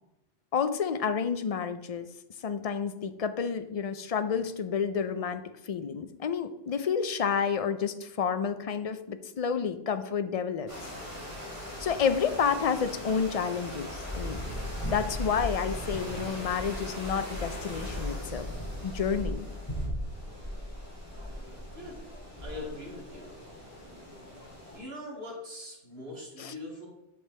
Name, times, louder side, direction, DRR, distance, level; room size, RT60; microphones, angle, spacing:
voice 1, 0.5-2.1 2.4-10.7 11.8-14.4 14.9-18.5 18.8-19.5 26.4-26.5, left 6 dB, 55° left, 10 dB, 0.4 m, -30 dB
sound 1, 10.7-24.8, equal, 25° left, 2.6 m, -38 dB
voice 2, 22.4-23.3 24.7-26.9, left 2 dB, 60° right, -3 dB, 2.7 m, -41 dB
7.9 x 6.5 x 3.2 m, 0.94 s
omnidirectional pair, 1.2 m